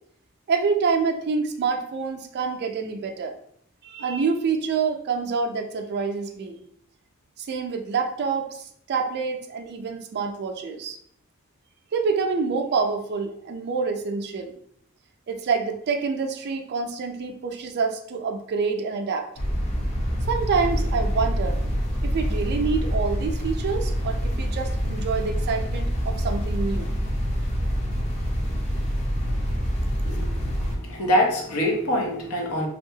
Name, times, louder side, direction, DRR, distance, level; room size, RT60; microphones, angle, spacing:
voice 1, 0.5-3.3 3.8-6.6 7.4-11.0 11.9-14.5 15.3-19.3 20.3-21.6 22.0-26.9, right 5 dB, 50° right, 5 dB, 0.3 m, -27 dB
sound 1, 19.4-30.8, equal, 30° left, 0.6 m, -26 dB
voice 2, 30.0-32.7, equal, 80° left, 0 dB, 0.7 m, -25 dB
2.7 x 2.3 x 2.7 m, 0.66 s
head